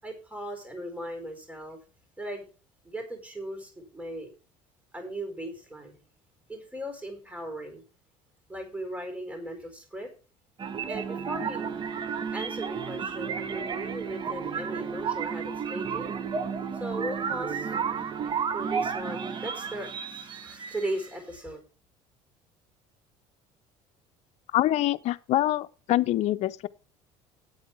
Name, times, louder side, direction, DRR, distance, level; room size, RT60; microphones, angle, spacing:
voice 1, 0.0-1.8 2.2-2.5 2.8-4.3 4.9-6.0 6.5-7.8 8.5-10.1 10.9-11.7 12.3-16.1 16.7-17.8 18.2-21.6, right 1 dB, 10° right, 4.5 m, -37 dB
sound 1, 10.6-21.2, right 6 dB, 35° right, 1.1 m, -32 dB
voice 2, 24.5-26.7, left 14 dB, 60° left, 0.7 m, -25 dB
8.7 x 8.6 x 6.0 m
supercardioid pair, 95°, 13 cm